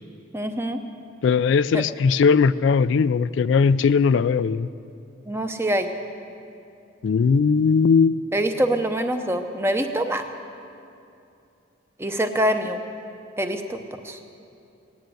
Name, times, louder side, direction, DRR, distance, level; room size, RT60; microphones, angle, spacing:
voice 1, 0.3-0.8 1.7-1.8 5.3-5.9 8.3-10.2 12.0-12.8 13.4-13.8 14.0-14.2, right 1 dB, 15° right, 6 dB, 0.7 m, -24 dB
voice 2, 1.2-4.7 7.0-8.2, left 5 dB, 70° left, 15 dB, 0.3 m, -19 dB
18.5 x 10.0 x 7.7 m, 2.6 s
head